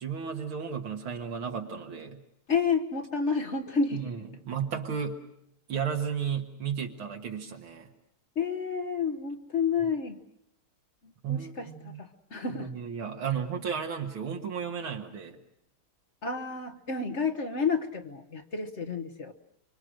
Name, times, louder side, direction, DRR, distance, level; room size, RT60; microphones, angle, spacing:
voice 1, 0.0-2.2 3.9-5.2 5.7-7.9 11.2-12.0 12.5-15.4, right 7 dB, 75° right, 2 dB, 2.3 m, -34 dB
voice 2, 2.5-4.1 8.3-10.2 11.3-11.7 12.0-12.7 16.2-19.3, left 5 dB, 40° left, 7 dB, 1.1 m, -30 dB
25.5 x 25.0 x 6.4 m, 0.76 s
omnidirectional pair, 2.3 m